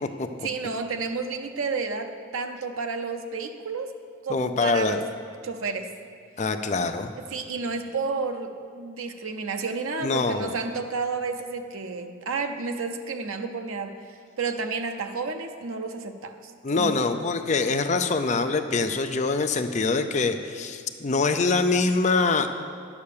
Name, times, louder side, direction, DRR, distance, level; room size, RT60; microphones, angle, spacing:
voice 1, 0.4-3.9 4.2-5.0 5.4-5.9 7.2-14.0 14.4-17.0, right 4 dB, 85° right, 6 dB, 0.7 m, -31 dB
voice 2, 4.3-5.0 6.4-7.1 10.0-10.5 16.6-22.5, left 3 dB, 35° left, 7 dB, 0.5 m, -24 dB
10.5 x 7.1 x 6.7 m, 2.3 s
head